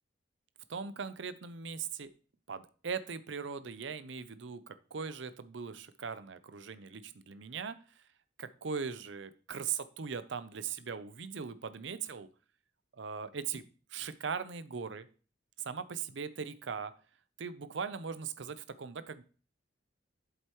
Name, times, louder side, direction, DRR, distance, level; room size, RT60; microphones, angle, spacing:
voice 1, 0.7-2.1 2.5-8.0 8.4-12.3 12.9-13.6 13.9-15.1 15.6-16.9 17.4-19.2, right 6 dB, 70° right, 13 dB, 0.6 m, -40 dB
7.9 x 7.8 x 3.0 m, 0.39 s
head